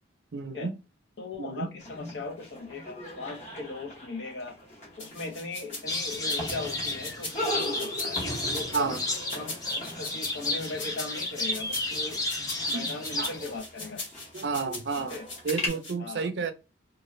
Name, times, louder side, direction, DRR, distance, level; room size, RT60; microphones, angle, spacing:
voice 1, 0.3-0.7 1.4-1.7 8.7-9.0 12.7-13.3 14.3-15.2 15.4-16.5, right 4 dB, 60° right, 0.4 m, -31 dB
voice 2, 1.2-4.5 5.0-8.2 8.5-9.0 9.3-12.2 12.7-14.0 15.0-15.2 16.0-16.3, left 3 dB, 65° left, 0.7 m, -38 dB
sound 1, 1.8-15.7, left 1 dB, 35° left, 1.0 m, -40 dB
sound 2, 5.0-15.9, left 2 dB, 80° left, 1.5 m, -41 dB
sound 3, 5.9-13.6, left 2 dB, 20° left, 0.5 m, -32 dB
2.3 x 2.3 x 3.1 m
head